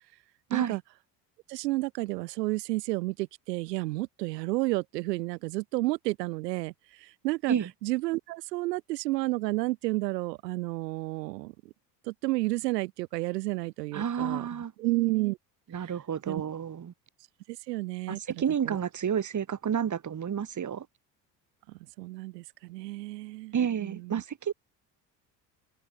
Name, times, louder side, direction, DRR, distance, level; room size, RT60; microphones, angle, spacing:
voice 1, 0.5-0.8 1.5-7.6 7.8-11.7 12.0-14.5 14.8-15.4 16.3-16.4 17.5-18.2 18.7-18.8 21.7-23.5 23.8-24.2, right 20 dB, 75° right, 4.0 m, -31 dB
voice 2, 13.9-14.7 15.7-16.9 18.1-20.9 23.5-24.5, right 8 dB, 35° right, 3.6 m, -30 dB
open air
hypercardioid pair, 60°, 49 cm